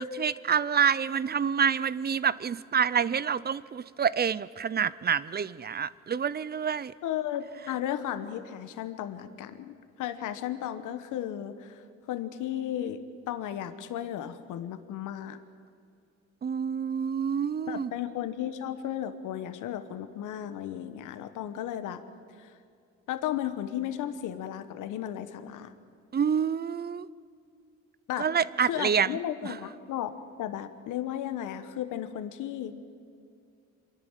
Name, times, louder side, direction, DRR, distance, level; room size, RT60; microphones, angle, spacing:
voice 1, 0.0-6.9 16.4-17.9 26.1-27.1 28.2-29.6, right 7 dB, 35° right, 19 dB, 0.5 m, -27 dB
voice 2, 7.0-11.8 12.1-15.4 17.7-22.0 22.4-22.5 23.1-25.7 28.1-28.3 28.6-30.1 30.4-32.7, left 11 dB, 85° left, 11 dB, 1.2 m, -34 dB
26.0 x 11.5 x 9.0 m, 2.4 s
cardioid pair, 90°, 30 cm